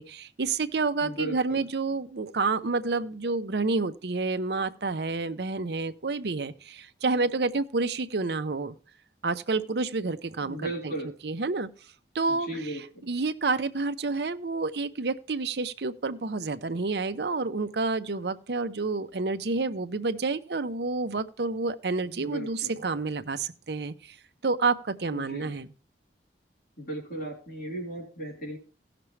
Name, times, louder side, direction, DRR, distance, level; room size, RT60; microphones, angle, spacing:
voice 1, 0.0-8.7 9.2-10.9 11.2-11.7 12.1-12.5 13.1-24.2 24.4-25.7, right 3 dB, 70° right, 9 dB, 0.7 m, -29 dB
voice 2, 1.0-1.6 10.4-11.1 12.3-13.1 22.0-22.8 25.1-25.5 26.8-28.6, right 1 dB, 55° left, -1 dB, 3.3 m, -36 dB
17.5 x 6.0 x 3.2 m, 0.38 s
head